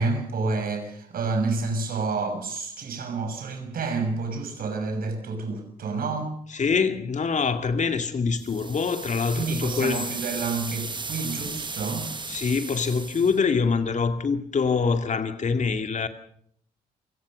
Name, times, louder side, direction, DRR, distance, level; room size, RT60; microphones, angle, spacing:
voice 1, 0.0-6.3 9.3-12.1, right 3 dB, 70° right, 6 dB, 6.4 m, -29 dB
voice 2, 6.5-10.0 12.3-16.1, left 5 dB, 50° left, 7 dB, 2.4 m, -25 dB
sound 1, 8.4-13.4, right 4 dB, 30° right, 1.4 m, -35 dB
27.5 x 17.5 x 6.6 m, 0.67 s
supercardioid pair, 60°, 16 cm